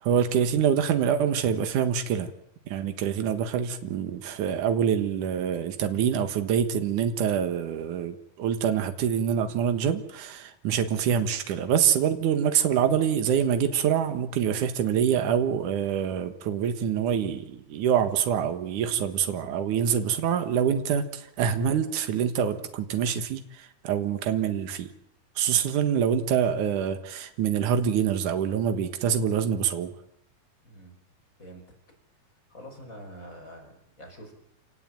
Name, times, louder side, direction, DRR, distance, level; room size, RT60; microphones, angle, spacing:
voice 1, 0.0-2.3 2.7-24.9 25.4-29.9, right 8 dB, 80° right, 9 dB, 3.0 m, -25 dB
voice 2, 31.4-31.8 32.5-34.3, equal, 25° left, 1 dB, 6.3 m, -45 dB
27.5 x 18.5 x 9.0 m, 0.77 s
omnidirectional pair, 3.6 m